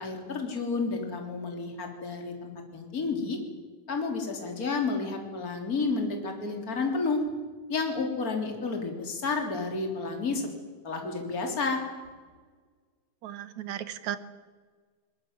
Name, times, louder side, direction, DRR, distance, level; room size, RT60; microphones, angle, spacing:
voice 1, 0.0-3.4 3.9-7.2 7.7-10.5 10.8-11.8, left 4 dB, 30° left, 3 dB, 3.8 m, -31 dB
voice 2, 13.2-14.2, right 11 dB, 75° right, 14 dB, 2.5 m, -35 dB
21.5 x 21.0 x 9.1 m, 1.5 s
omnidirectional pair, 3.4 m